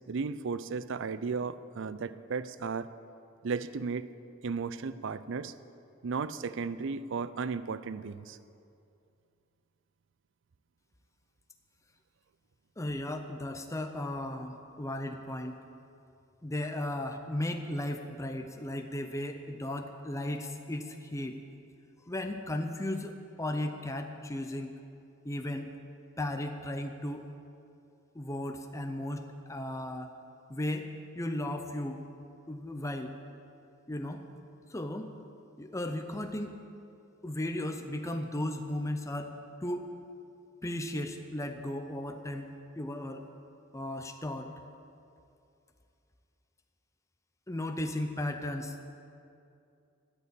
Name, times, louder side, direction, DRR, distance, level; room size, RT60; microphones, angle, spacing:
voice 1, 0.0-2.9 3.4-4.1 4.4-5.5 6.0-8.4, right 5 dB, 60° right, 15 dB, 0.5 m, -35 dB
voice 2, 12.8-15.6 16.4-21.4 22.1-24.8 25.2-25.7 26.2-27.2 28.1-30.1 30.5-30.9 31.2-32.0 32.5-33.1 33.9-34.2 34.7-35.1 35.6-36.5 37.2-39.3 39.6-39.9 40.6-43.3 43.7-44.5 47.5-48.9, left 1 dB, 15° left, 5 dB, 0.7 m, -35 dB
13.5 x 8.4 x 8.2 m, 2.6 s
head